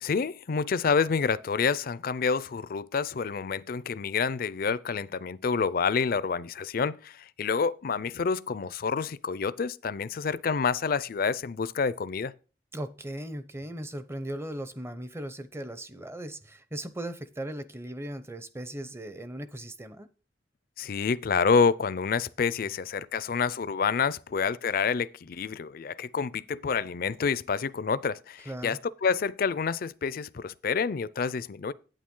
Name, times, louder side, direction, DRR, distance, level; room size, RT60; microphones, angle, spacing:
voice 1, 0.0-12.3 20.8-31.7, left 5 dB, 55° left, 0.4 m, -28 dB
voice 2, 12.7-20.1 28.4-28.8, right 1 dB, 15° right, 0.7 m, -38 dB
8.9 x 8.8 x 3.7 m
head